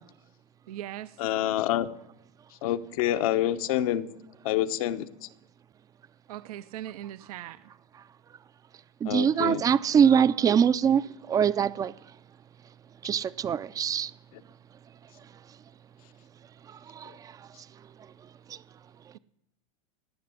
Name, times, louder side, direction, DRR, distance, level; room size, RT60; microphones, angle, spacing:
voice 1, 0.7-1.2 6.3-7.6, right 13 dB, 75° right, 0.6 m, -39 dB
voice 2, 1.2-1.9 2.6-4.1 4.4-5.1 9.1-9.6 14.3-14.4, left 12 dB, 65° left, 1.0 m, -27 dB
voice 3, 9.0-11.0 11.3-11.9 13.0-14.1 17.0-17.1, right 8 dB, 20° right, 0.4 m, -23 dB
17.5 x 6.9 x 9.9 m
supercardioid pair, 130°, 19 cm